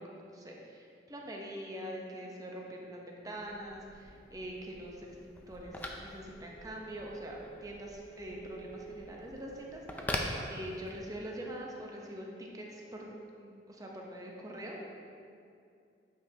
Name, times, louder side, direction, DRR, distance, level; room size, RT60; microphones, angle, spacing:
voice 1, 0.0-10.2 10.5-13.1 13.4-14.8, equal, 20° right, -1 dB, 0.8 m, -44 dB
Telephone, 3.3-11.2, left 1 dB, 10° left, 0.4 m, -43 dB
8.9 x 5.3 x 2.8 m, 2.5 s
head